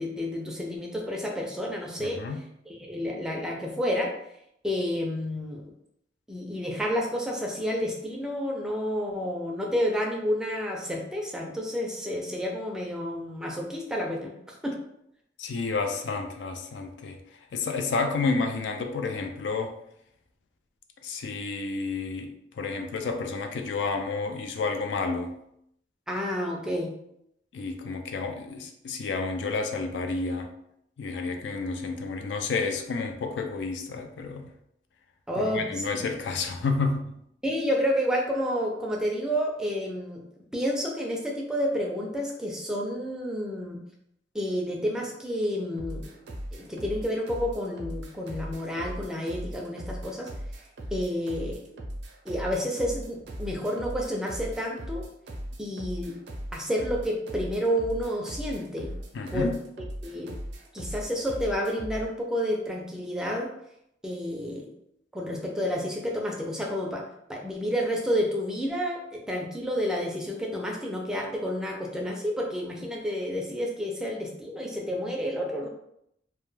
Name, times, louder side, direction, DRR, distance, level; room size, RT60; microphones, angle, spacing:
voice 1, 0.0-2.2 2.7-4.1 4.6-5.7 6.3-14.3 14.6-14.8 26.1-26.9 35.3-36.0 37.4-40.2 40.5-43.8 44.3-46.1 46.5-50.3 50.9-51.6 52.3-55.0 55.6-56.2 56.5-58.9 59.3-59.5 60.0-60.3 60.7-63.5 64.0-64.7 65.1-67.0 67.3-75.7, equal, 5° right, -1 dB, 0.4 m, -30 dB
voice 2, 2.0-2.4 15.4-17.2 17.5-19.7 21.0-22.3 22.6-25.3 27.5-30.5 31.0-34.5 35.5-37.0 59.1-59.6, left 4 dB, 75° left, 4 dB, 0.4 m, -30 dB
sound 1, 45.8-62.1, equal, 70° right, 0.5 m, -38 dB
2.2 x 2.2 x 3.1 m, 0.76 s
head